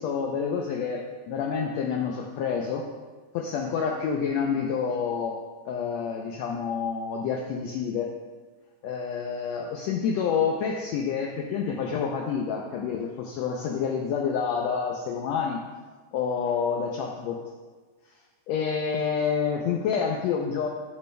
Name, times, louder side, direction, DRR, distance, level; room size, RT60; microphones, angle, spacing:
voice 1, 0.0-2.9 3.3-5.4 5.7-8.1 8.8-15.6 16.1-17.4 18.5-20.7, left 6 dB, 75° left, 1 dB, 1.7 m, -28 dB
10.0 x 8.7 x 2.2 m, 1.4 s
omnidirectional pair, 3.4 m